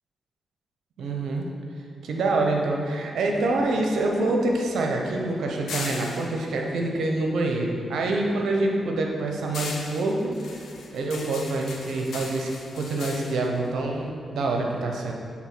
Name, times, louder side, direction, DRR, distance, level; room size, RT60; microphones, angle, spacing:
voice 1, 1.0-1.5 2.0-10.6 10.9-15.1, right 2 dB, 80° right, 1 dB, 0.9 m, -26 dB
sound 1, 3.3-7.8 8.2-14.6, left 4 dB, 80° left, 0.8 m, -40 dB
7.2 x 3.6 x 6.1 m, 2.4 s
cardioid pair, 55°, 0 cm